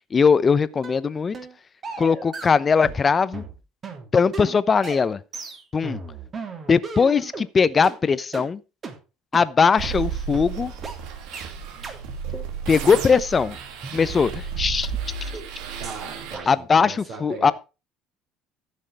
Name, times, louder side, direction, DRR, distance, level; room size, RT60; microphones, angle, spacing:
voice 1, 0.1-1.4 2.0-3.4 4.1-5.2 5.7-6.0 6.7-8.6 9.3-10.7 12.7-13.6 13.9-14.9 16.5-17.5, left 5 dB, 30° left, 0.8 m, -20 dB
sound 1, 0.8-1.0 1.3-1.5 1.8-3.1 3.3-7.5 7.8-8.0 8.3-8.5 8.8-9.0 9.3-9.5 9.8-10.0 10.3-10.5 10.8-11.0 11.3-11.5 11.8-12.0 12.3-12.5 12.8-14.0 14.3-14.4 14.8-14.9 15.3-15.5 15.8-16.0 16.3-16.5, right 4 dB, 35° right, 3.1 m, -36 dB
sound 2, 9.8-16.4, right 7 dB, 75° right, 2.6 m, -33 dB
voice 2, 15.8-17.5, right 3 dB, 60° right, 5.6 m, -38 dB
14.5 x 6.5 x 4.9 m
cardioid pair, 110°, 0 cm